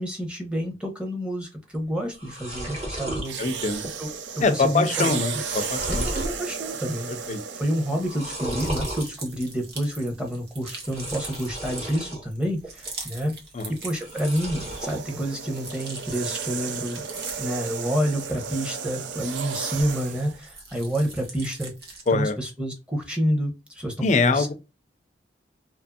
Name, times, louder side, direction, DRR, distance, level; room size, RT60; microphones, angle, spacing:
voice 1, 0.0-3.4 4.0-4.1 4.4-5.4 5.9-13.3 13.7-17.0 17.4-21.7 22.1-24.5, equal, 5° right, 0.8 m, -29 dB
sound 1, 1.7-1.8 2.1-3.3 3.7-4.1 4.4-4.5 5.1-6.4 6.8-7.3 8.0-9.1 10.8-12.2 12.6-13.2 14.0-15.0, right 1 dB, 40° right, 1.2 m, -33 dB
sound 2, 3.2-8.7 9.5-9.7 13.7-20.4, right 6 dB, 90° right, 0.4 m, -34 dB
voice 2, 3.4-3.8 4.4-6.1 7.3-7.4 13.5-13.7 22.1-22.4 24.0-24.5, left 4 dB, 40° left, 0.4 m, -23 dB
sound 3, 8.3-14.7 15.1-20.0 20.3-22.2, right 3 dB, 60° right, 1.0 m, -42 dB
2.8 x 2.6 x 2.2 m
head